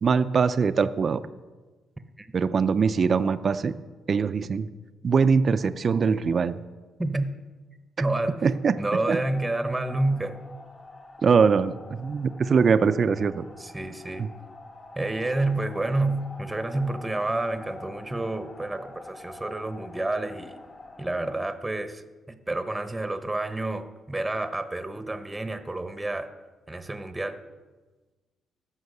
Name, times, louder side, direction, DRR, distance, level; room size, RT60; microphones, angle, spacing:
voice 1, 0.0-1.2 2.3-3.7 4.1-4.7 5.0-6.6 8.4-9.2 11.2-11.7 12.0-13.4 14.2-14.3, right 5 dB, 45° right, 11 dB, 0.4 m, -22 dB
voice 2, 7.0-7.3 8.0-8.5 8.8-10.4 13.6-14.3 15.0-20.6 21.0-26.3 26.7-27.4, right 2 dB, 10° right, 10 dB, 0.8 m, -29 dB
sound 1, 8.3-21.4, left 2 dB, 40° left, 2.2 m, -46 dB
14.5 x 5.6 x 6.6 m, 1.3 s
cardioid pair, 90°, 0 cm